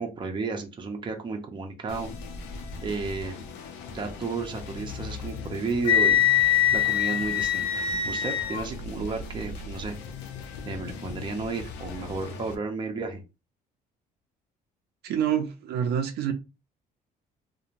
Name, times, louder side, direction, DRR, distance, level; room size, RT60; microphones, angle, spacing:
voice 1, 0.0-2.1 2.8-3.4 3.9-6.3 6.7-10.0 10.6-13.2, right 4 dB, 30° right, 3 dB, 0.6 m, -33 dB
sound 1, 1.9-12.5, left 4 dB, 85° left, 0.6 m, -39 dB
Wind instrument woodwind instrument, 5.8-8.7, left 9 dB, 30° left, 0.4 m, -23 dB
voice 2, 15.0-16.3, right 9 dB, 70° right, 6 dB, 0.5 m, -27 dB
2.9 x 2.1 x 2.5 m, 0.28 s
cardioid pair, 110°, 17 cm